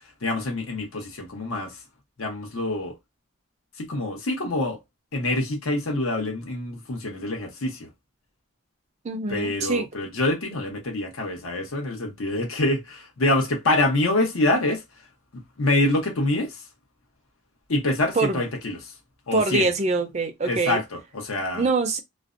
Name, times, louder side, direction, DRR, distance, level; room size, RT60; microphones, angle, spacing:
voice 1, 0.2-1.8 2.2-3.0 3.8-4.8 5.1-7.9 9.3-14.8 15.3-16.6 17.7-18.9 19.3-19.7 20.4-21.6, left 2 dB, 80° left, 0.9 m, -26 dB
voice 2, 9.0-9.9 18.2-18.4 19.3-20.8 21.5-22.0, right 3 dB, 30° right, 0.4 m, -24 dB
2.5 x 2.1 x 2.5 m
head